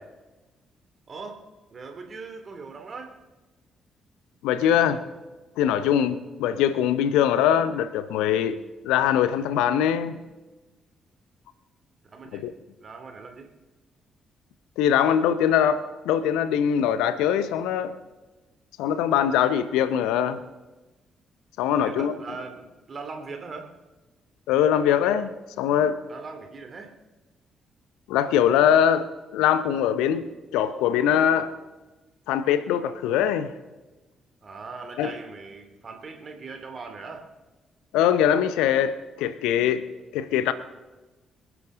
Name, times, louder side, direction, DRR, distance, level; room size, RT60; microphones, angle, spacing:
voice 1, 1.1-1.4 1.7-3.2 12.0-12.5 12.8-13.5 21.7-23.7 26.1-26.9 34.4-37.3, right 4 dB, 40° right, 2.6 m, -40 dB
voice 2, 4.4-5.0 5.6-10.2 12.3-12.5 14.8-18.0 18.8-20.4 21.6-22.1 24.5-25.3 25.6-26.0 28.1-31.5 32.3-33.5 35.0-35.1 37.9-39.9 40.1-40.5, left 9 dB, 65° left, 0.6 m, -22 dB
25.5 x 11.0 x 3.7 m
figure-of-eight pair, 40°, 0 cm